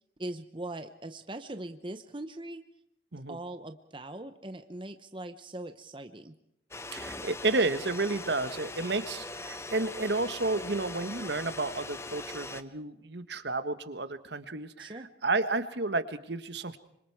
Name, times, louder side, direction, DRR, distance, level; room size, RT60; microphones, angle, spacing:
voice 1, 0.2-2.7 3.3-6.3 14.8-15.1, right 1 dB, 25° right, 8 dB, 0.9 m, -41 dB
sound 1, 6.7-12.6, left 2 dB, 15° left, 0.8 m, -41 dB
voice 2, 6.9-14.9 15.2-16.8, right 2 dB, 65° right, 11 dB, 1.4 m, -31 dB
26.0 x 25.5 x 4.8 m, 0.80 s
head